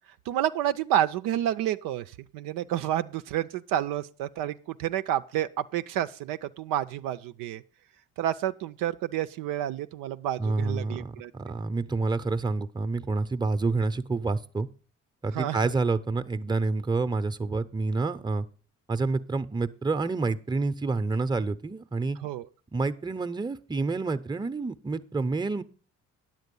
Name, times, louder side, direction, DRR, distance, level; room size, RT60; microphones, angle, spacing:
voice 1, 0.3-7.6 8.2-11.3 15.3-15.7 22.2-22.4, right 11 dB, 75° right, 0.5 m, -29 dB
voice 2, 10.4-14.7 15.2-18.5 18.9-22.2 22.7-25.6, right 3 dB, 15° right, 0.7 m, -28 dB
9.5 x 7.6 x 5.3 m
hypercardioid pair, 50°, 34 cm